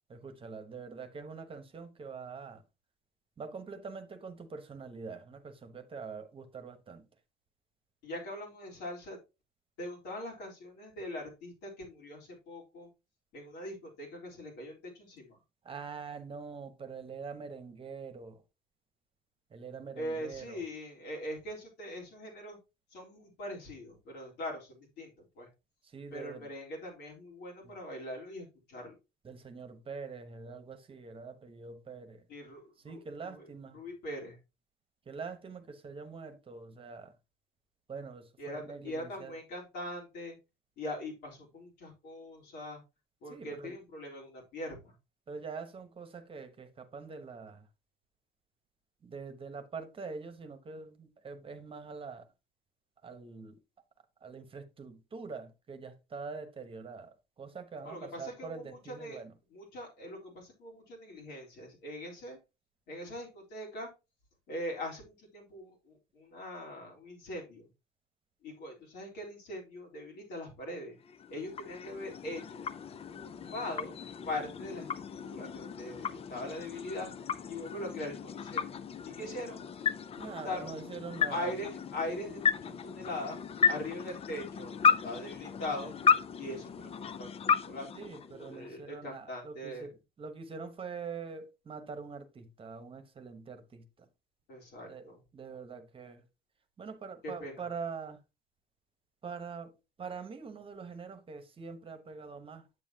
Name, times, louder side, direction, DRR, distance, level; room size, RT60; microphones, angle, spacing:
voice 1, 0.1-2.6 3.4-7.1 15.6-18.4 19.5-20.6 25.8-26.5 27.6-27.7 29.2-32.3 32.8-33.8 35.1-37.1 37.9-39.4 43.3-43.8 45.3-47.7 49.0-52.3 53.0-53.6 54.2-59.4 79.2-79.4 80.2-81.5 87.9-94.1 94.9-96.2 96.8-98.2 99.2-99.7 100.0-102.7, right 5 dB, 30° right, 1.2 m, -44 dB
voice 2, 8.0-9.2 9.8-12.9 13.3-15.4 20.0-22.6 22.9-25.5 26.1-29.0 32.3-33.0 33.3-33.4 33.7-34.4 38.4-40.4 40.8-42.8 43.2-44.9 57.8-59.2 59.5-62.4 62.9-63.9 64.5-67.7 68.4-71.0 71.3-72.7 73.1-74.0 74.2-77.1 77.5-78.7 79.0-79.6 80.2-81.0 81.3-83.4 83.7-85.9 86.4-89.9 94.5-95.2 97.2-97.5, left 1 dB, 85° left, 3.7 m, -41 dB
sound 1, 71.0-88.8, left 6 dB, 35° left, 0.5 m, -34 dB
8.2 x 7.3 x 2.8 m
cardioid pair, 110°, 17 cm